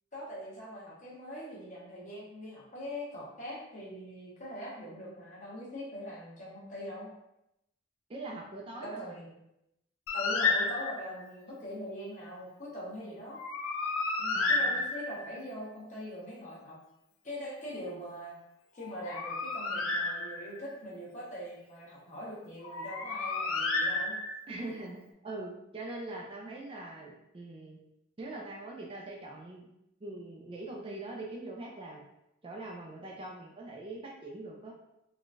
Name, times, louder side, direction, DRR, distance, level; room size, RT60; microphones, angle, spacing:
voice 1, 0.1-7.1 8.8-9.3 10.1-13.4 14.2-16.8 17.2-18.4 18.7-24.2, equal, 35° left, -6 dB, 1.0 m, -42 dB
voice 2, 8.1-9.1 14.3-14.8 24.5-27.8 28.2-29.6 30.0-32.0 32.4-34.7, right 2 dB, 25° right, -1 dB, 0.3 m, -42 dB
Bird, 10.1-11.2 13.3-15.4 18.8-20.7 22.6-24.6, left 3 dB, 70° left, 0.4 m, -31 dB
3.7 x 2.2 x 2.5 m, 0.84 s
head